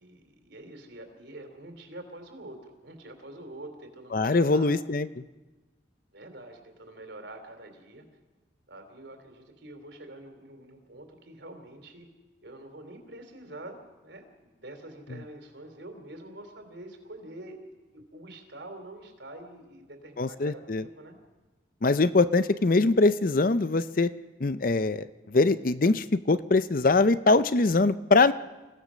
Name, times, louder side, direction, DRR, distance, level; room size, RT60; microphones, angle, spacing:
voice 1, 0.0-4.7 6.1-8.1 8.7-12.1 12.4-21.2, right 1 dB, 70° right, 5 dB, 3.3 m, -46 dB
voice 2, 4.1-5.2 20.2-20.8 21.8-24.1 24.4-28.3, left 3 dB, 45° left, 14 dB, 0.6 m, -23 dB
27.5 x 17.0 x 6.3 m, 1.2 s
head